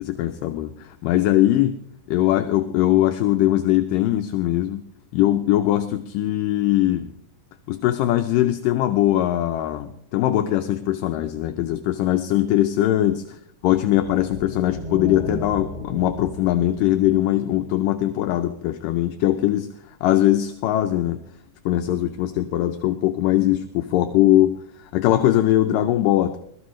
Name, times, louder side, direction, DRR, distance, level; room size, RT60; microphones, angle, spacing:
voice 1, 0.0-1.8 2.1-4.9 5.1-7.1 7.7-13.2 13.6-19.7 20.0-21.2 21.7-26.4, left 13 dB, 75° left, 7 dB, 2.2 m, -21 dB
sound 1, 13.9-18.1, left 1 dB, 40° left, 5.6 m, -35 dB
22.5 x 13.5 x 3.2 m, 0.68 s
omnidirectional pair, 4.3 m